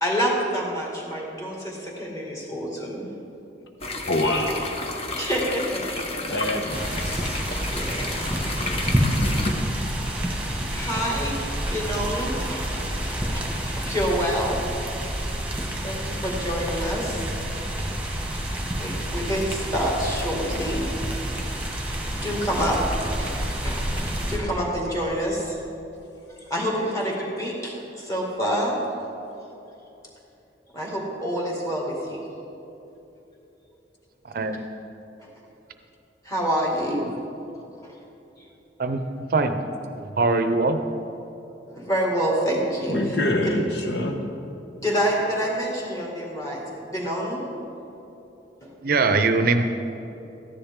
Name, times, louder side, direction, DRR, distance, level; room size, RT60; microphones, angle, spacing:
voice 1, 0.0-3.1 5.2-6.2 7.7-9.3 10.6-11.4 11.7-14.6 15.8-17.3 18.8-20.9 21.2-21.3 21.7-21.8 22.1-22.8 23.2-25.6 26.3-28.8 30.7-32.3 36.2-37.0 37.8-37.9 41.7-43.2 43.4-43.5 44.8-47.4 48.6-48.7, equal, 20° left, -3 dB, 2.0 m, -28 dB
sound 1, 3.8-9.5, left 2 dB, 35° left, 0.8 m, -31 dB
voice 2, 4.1-4.8 6.3-7.4 17.1-17.5 42.9-44.2, left 1 dB, 75° left, 2 dB, 1.1 m, -26 dB
sound 2, 6.7-24.4, equal, 10° right, 1.4 m, -28 dB
voice 3, 34.2-34.6 36.9-37.0 38.8-39.0 39.3-39.6 40.0-40.8 48.8-49.6, right 3 dB, 55° right, 8 dB, 0.6 m, -22 dB
13.5 x 10.0 x 3.7 m, 2.9 s
head